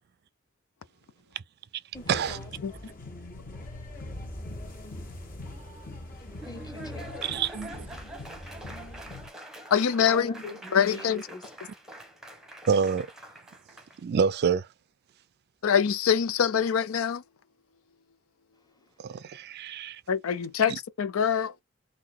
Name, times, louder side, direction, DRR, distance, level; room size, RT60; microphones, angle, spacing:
sound 1, 1.9-9.3, left 1 dB, 45° left, 1.7 m, -42 dB
voice 1, 1.9-2.5 6.4-7.3 8.0-8.1 10.0-11.4, left 2 dB, 20° left, 1.6 m, -42 dB
Laughter / Applause, 6.1-14.0, right 1 dB, ahead, 1.0 m, -45 dB
voice 2, 7.2-7.7 12.7-13.1 14.0-14.7 19.0-20.0, right 6 dB, 50° right, 0.4 m, -26 dB
voice 3, 9.7-10.3 10.7-11.2 15.6-17.2 20.1-21.6, left 7 dB, 90° left, 0.5 m, -24 dB
3.9 x 2.7 x 4.4 m
head